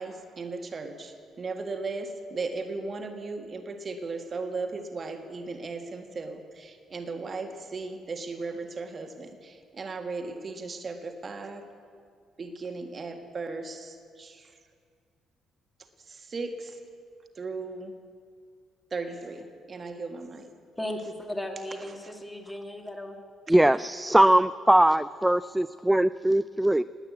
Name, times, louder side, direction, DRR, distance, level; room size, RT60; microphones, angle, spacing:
voice 1, 0.0-11.7 12.4-14.6 16.1-16.8 17.4-17.9 18.9-20.5 21.9-22.1, right 3 dB, 40° right, 5 dB, 1.7 m, -36 dB
voice 2, 20.8-23.2, left 1 dB, 10° left, 3 dB, 2.5 m, -36 dB
voice 3, 23.5-26.8, right 1 dB, 10° right, 14 dB, 0.4 m, -21 dB
19.0 x 9.0 x 8.4 m, 2.2 s
figure-of-eight pair, 45°, 0 cm